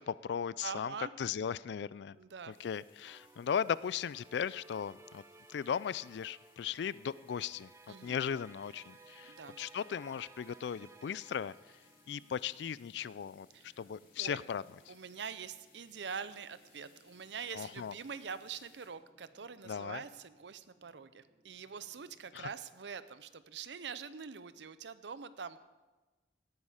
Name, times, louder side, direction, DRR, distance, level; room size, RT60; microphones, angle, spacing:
voice 1, 0.0-2.2 2.5-5.2 5.5-11.5 12.1-13.5 13.8-14.6 17.5-17.9 19.6-20.0 22.3-22.5, left 7 dB, 70° left, 20 dB, 0.3 m, -37 dB
voice 2, 0.6-1.1 2.1-2.6 7.9-8.2 9.3-9.6 13.5-13.8 14.2-14.4 14.9-25.6, right 6 dB, 75° right, 14 dB, 0.6 m, -44 dB
sound 1, 2.5-18.9, left 5 dB, 50° left, 3.0 m, -68 dB
sound 2, 3.0-12.8, right 3 dB, 15° right, 0.6 m, -59 dB
sound 3, 8.5-22.5, equal, 40° right, 4.4 m, -70 dB
17.5 x 9.7 x 5.0 m, 1.2 s
head